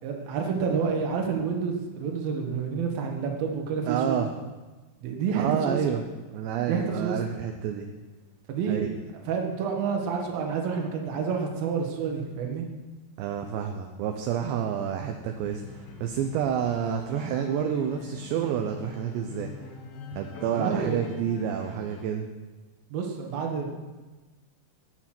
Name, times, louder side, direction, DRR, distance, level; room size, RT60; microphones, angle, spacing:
voice 1, 0.0-4.2 5.0-5.8 6.7-7.2 8.5-8.9 9.2-12.7 20.4-21.1 22.9-23.7, right 6 dB, 60° right, 2 dB, 3.1 m, -29 dB
voice 2, 3.9-4.3 5.4-6.0 6.3-7.9 8.7-8.9 13.2-19.5 20.1-22.2, right 8 dB, 80° right, 4 dB, 2.9 m, -29 dB
sound 1, 15.3-22.0, left 4 dB, 85° left, 4.6 m, -44 dB
16.0 x 8.5 x 6.0 m, 1.2 s
omnidirectional pair, 5.4 m